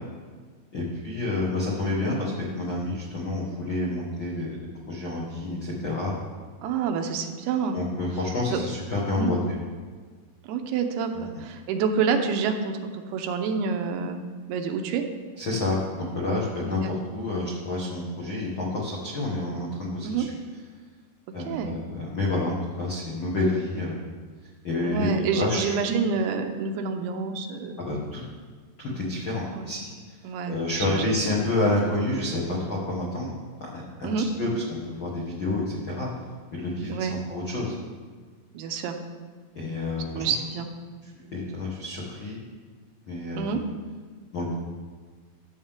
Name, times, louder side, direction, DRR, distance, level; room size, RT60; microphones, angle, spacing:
voice 1, 0.7-6.1 7.7-9.6 11.1-11.2 15.4-20.3 21.3-24.0 24.6-25.8 27.8-28.2 28.8-29.9 30.5-33.3 33.7-36.1 36.5-37.7 39.5-40.2 41.3-42.4 43.1-43.6 44.3-44.5, left 2 dB, 80° left, -5 dB, 1.1 m, -29 dB
voice 2, 6.6-7.8 8.5-8.6 9.1-9.3 10.4-14.2 14.5-15.0 16.8-16.9 20.0-20.3 21.5-21.8 24.8-27.7 29.5-29.7 30.2-31.1 34.0-34.3 36.9-37.2 38.5-39.0 40.1-40.7 43.4-43.6, right 6 dB, 90° right, 5 dB, 2.7 m, -28 dB
14.0 x 7.3 x 3.6 m, 1.5 s
omnidirectional pair, 4.6 m